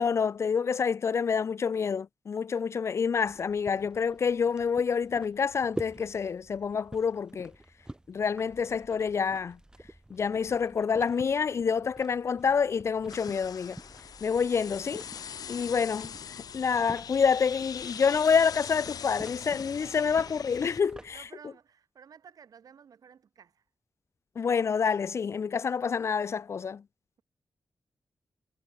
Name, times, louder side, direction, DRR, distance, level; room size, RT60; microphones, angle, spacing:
voice 1, 0.0-7.5 8.1-9.6 10.1-13.8 14.2-15.0 15.5-16.1 16.5-21.2 24.4-26.8, left 6 dB, 45° left, 0.3 m, -27 dB
sound 1, 3.2-21.3, right 1 dB, 10° right, 5.8 m, -48 dB
sound 2, 13.1-20.8, left 8 dB, 80° left, 1.6 m, -42 dB
voice 2, 14.5-14.8 15.5-15.8 17.2-17.4 19.7-20.2 21.1-23.6, right 7 dB, 70° right, 7.4 m, -54 dB
wide cardioid pair, 120°, 6 cm